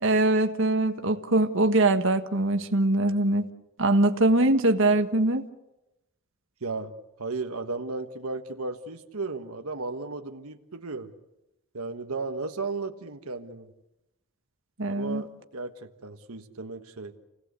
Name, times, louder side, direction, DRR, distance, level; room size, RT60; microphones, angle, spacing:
voice 1, 0.0-3.5 3.8-5.4 14.8-15.2, right 2 dB, 60° right, 6 dB, 1.5 m, -22 dB
voice 2, 6.6-6.9 7.2-11.1 11.7-13.7 14.9-17.1, right 3 dB, 85° right, 6 dB, 1.4 m, -35 dB
29.0 x 18.0 x 8.2 m, 0.94 s
head